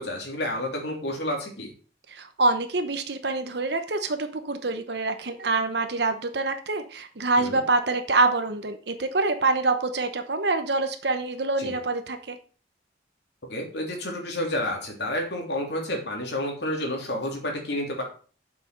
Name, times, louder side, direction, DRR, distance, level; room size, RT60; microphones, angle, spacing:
voice 1, 0.0-1.7 7.4-7.6 11.6-11.8 13.5-18.0, left 1 dB, 60° left, 1 dB, 3.2 m, -30 dB
voice 2, 2.1-12.4, right 3 dB, 60° right, 8 dB, 1.0 m, -26 dB
7.7 x 6.1 x 6.7 m, 0.40 s
head